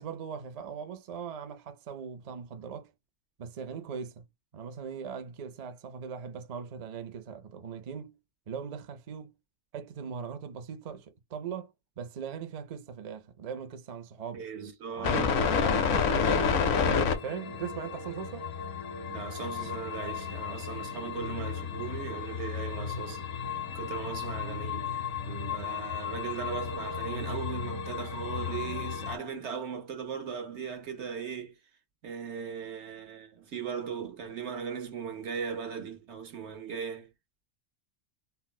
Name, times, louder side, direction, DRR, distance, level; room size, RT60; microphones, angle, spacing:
voice 1, 0.0-2.9 3.4-4.2 4.5-8.2 8.5-9.4 9.7-14.4 14.9-16.6 16.8-18.5, right 6 dB, 50° right, 0.4 m, -40 dB
voice 2, 14.3-15.4 15.6-15.9 19.1-23.3 23.7-24.9 25.3-31.5 32.0-37.1, right 7 dB, 70° right, 1.1 m, -38 dB
sound 1, 15.0-29.2, left 6 dB, 85° left, 1.0 m, -31 dB
4.1 x 2.0 x 2.2 m
omnidirectional pair, 1.3 m